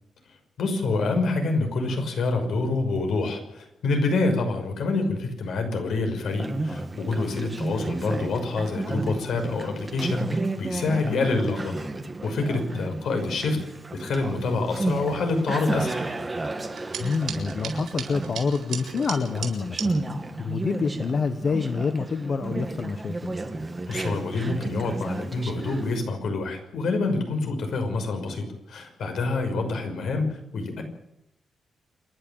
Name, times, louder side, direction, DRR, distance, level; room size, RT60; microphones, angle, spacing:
voice 1, 0.6-11.7 12.2-13.6 13.9-16.0 23.9-30.8, left 3 dB, 70° left, 5 dB, 5.8 m, -27 dB
Conversation, 6.3-26.0, right 2 dB, 15° right, 2.0 m, -32 dB
sound 1, 16.6-19.9, right 8 dB, 80° right, 5.4 m, -37 dB
voice 2, 17.0-23.3, left 5 dB, 40° left, 8 dB, 1.2 m, -27 dB
28.0 x 11.5 x 9.0 m, 0.83 s
wide cardioid pair, 165°, 0 cm